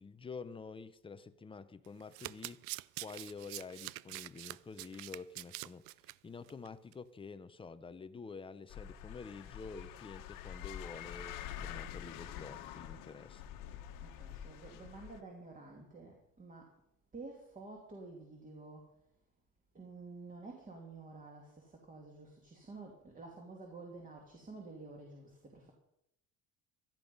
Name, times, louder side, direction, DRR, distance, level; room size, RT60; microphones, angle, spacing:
voice 1, 0.0-2.6 3.0-13.4, left 4 dB, 15° left, 13 dB, 0.7 m, -48 dB
Domestic sounds home sounds, 1.8-6.1 6.5-6.7 6.9-7.0, right 20 dB, 70° right, 0.5 m, -45 dB
sound 1, 8.7-15.2, left 10 dB, 60° left, 1.5 m, -46 dB
voice 2, 14.0-16.8 17.1-18.9 19.7-25.7, right 3 dB, 20° right, 0 dB, 2.6 m, -50 dB
16.5 x 12.0 x 5.4 m, 0.80 s
cardioid pair, 140°, 37 cm